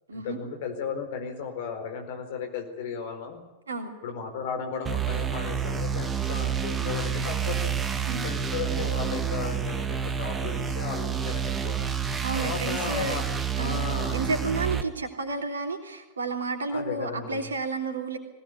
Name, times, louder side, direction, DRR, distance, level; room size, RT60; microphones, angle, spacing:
voice 1, 0.1-3.4 4.0-7.7 8.2-11.8 12.3-13.2 13.6-14.2 16.7-17.5, left 6 dB, 55° left, 6 dB, 4.5 m, -35 dB
sound 1, 4.8-14.8, right 7 dB, 15° right, 1.8 m, -29 dB
voice 2, 12.2-13.2 13.6-18.2, right 3 dB, 70° right, 5 dB, 3.2 m, -31 dB
21.5 x 18.0 x 9.6 m, 1.0 s
figure-of-eight pair, 90°, 0 cm